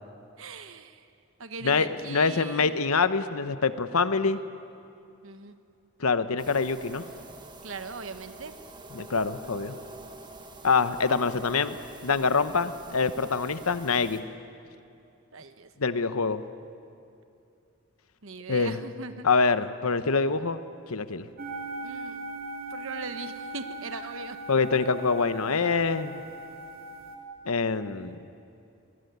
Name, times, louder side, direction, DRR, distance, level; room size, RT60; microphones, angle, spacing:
voice 1, 0.4-1.0 1.4-2.7 5.2-5.6 7.6-8.5 15.3-15.7 18.2-19.3 21.8-22.3 22.7-24.4, right 4 dB, 60° right, 10 dB, 1.2 m, -40 dB
voice 2, 1.6-4.4 6.0-7.0 8.9-9.7 10.6-11.8 12.0-14.2 15.8-16.4 18.5-18.8 19.2-20.6 20.9-21.3 24.5-26.2 27.5-28.2, left 4 dB, 75° left, 12 dB, 1.0 m, -25 dB
sound 1, 6.4-14.2, right 2 dB, 20° right, 1.4 m, -46 dB
sound 2, 21.4-27.2, right 2 dB, 40° right, 2.9 m, -39 dB
25.0 x 19.5 x 9.5 m, 2.6 s
head